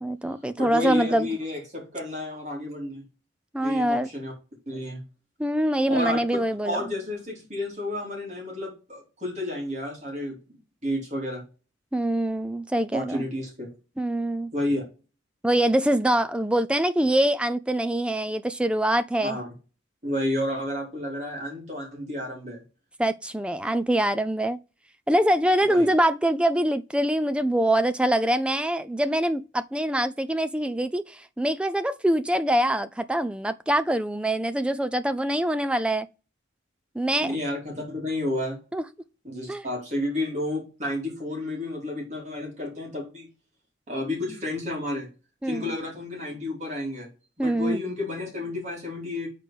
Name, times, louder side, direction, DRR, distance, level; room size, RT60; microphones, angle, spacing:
voice 1, 0.0-1.3 3.5-4.1 5.4-6.9 11.9-13.2 14.0-14.5 15.4-19.4 23.0-24.6 25.1-36.1 37.0-37.3 38.7-38.8 39.5-39.6 45.4-45.7 47.4-47.8, right 1 dB, 5° right, 0.3 m, -24 dB
voice 2, 0.6-3.0 3.6-4.3 4.7-5.0 5.9-11.4 12.9-13.7 14.5-14.8 19.2-19.4 20.0-22.6 25.7-25.9 37.2-38.6 39.2-43.3 43.9-45.1 45.4-47.1 47.4-49.3, left 1 dB, 35° right, 3.1 m, -31 dB
6.2 x 4.6 x 5.0 m
head